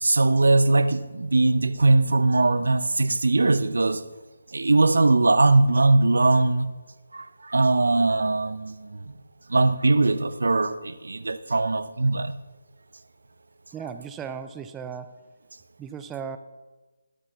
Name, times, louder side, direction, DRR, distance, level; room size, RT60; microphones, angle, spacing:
voice 1, 0.0-4.0 4.5-6.7 7.1-9.0 9.5-12.4, right 2 dB, 65° right, 14 dB, 0.6 m, -21 dB
voice 2, 13.7-15.2 15.8-16.4, right 7 dB, 10° right, 9 dB, 0.4 m, -36 dB
19.0 x 12.0 x 2.3 m, 1.2 s
figure-of-eight pair, 145°, 0 cm